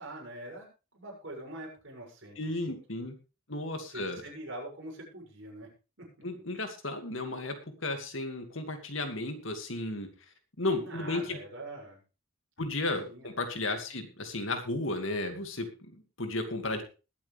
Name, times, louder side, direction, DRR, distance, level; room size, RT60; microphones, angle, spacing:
voice 1, 0.0-3.1 3.9-5.7 6.0-6.3 10.8-12.0 13.0-13.4, right 1 dB, 60° right, -1 dB, 6.9 m, -44 dB
voice 2, 2.4-3.1 3.5-4.2 6.2-10.1 10.6-11.4 12.6-16.8, left 2 dB, 65° left, 6 dB, 2.4 m, -34 dB
21.0 x 8.6 x 3.5 m, 0.32 s
head